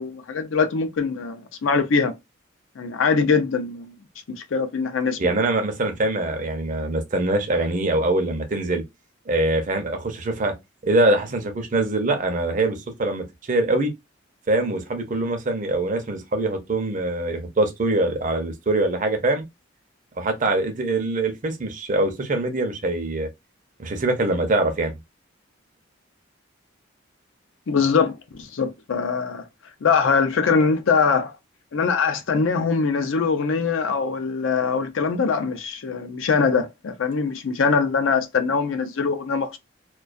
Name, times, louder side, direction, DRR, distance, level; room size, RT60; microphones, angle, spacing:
voice 1, 0.0-2.1 2.8-3.9 4.4-5.2 27.7-29.4 29.8-31.4 31.7-39.6, left 5 dB, 70° left, 0.4 m, -22 dB
voice 2, 5.2-8.8 9.3-10.5 10.8-13.9 14.5-19.4 20.2-23.3 23.8-25.0, right 2 dB, 40° right, 0.5 m, -23 dB
2.3 x 2.2 x 2.4 m
head